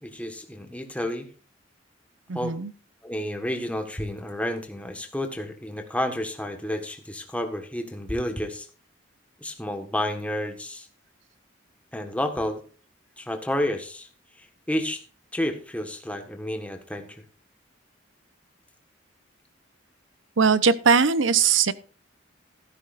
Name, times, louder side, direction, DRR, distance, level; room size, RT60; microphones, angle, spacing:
voice 1, 0.0-1.3 2.3-2.5 3.0-8.7 9.4-10.9 11.9-12.6 13.2-14.1 14.3-15.0 15.3-17.2, left 1 dB, 5° left, 5 dB, 1.4 m, -30 dB
voice 2, 2.3-2.7 20.4-21.7, right 5 dB, 80° right, 15 dB, 0.8 m, -20 dB
14.0 x 12.5 x 2.5 m, 0.38 s
head